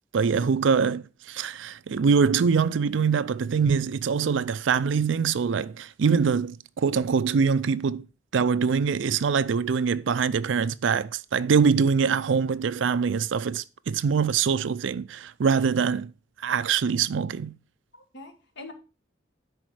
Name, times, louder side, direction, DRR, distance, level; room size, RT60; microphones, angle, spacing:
voice 1, 0.1-8.1 8.3-16.1 16.4-17.5, right 6 dB, 75° right, 0.4 m, -24 dB
voice 2, 17.9-18.7, left 1 dB, 65° left, 1.6 m, -43 dB
10.5 x 4.3 x 4.7 m
head